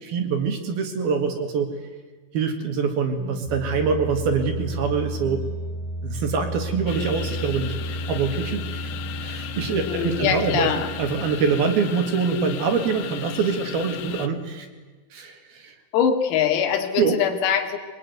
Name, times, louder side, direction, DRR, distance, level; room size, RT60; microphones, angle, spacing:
voice 1, 0.0-1.7 2.3-5.4 6.0-8.9 9.2-10.7 11.0-14.7 15.1-15.7 17.0-17.2, right 5 dB, 55° right, 6 dB, 3.3 m, -24 dB
sound 1, 3.0-11.8, right 1 dB, ahead, 3.5 m, -33 dB
sound 2, 6.9-14.3, left 10 dB, 70° left, 2.8 m, -36 dB
voice 2, 9.7-10.9 15.9-17.8, left 8 dB, 90° left, 6 dB, 5.0 m, -23 dB
23.5 x 23.0 x 9.5 m, 1.4 s
omnidirectional pair, 5.9 m